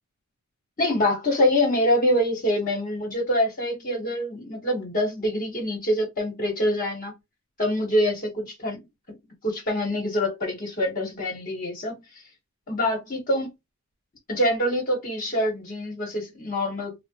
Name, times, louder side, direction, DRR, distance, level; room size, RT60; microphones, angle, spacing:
voice 1, 0.8-7.1 7.6-8.8 9.4-12.0 12.7-13.5 14.3-16.9, left 1 dB, 40° left, 1.1 m, -25 dB
3.4 x 2.0 x 2.7 m
head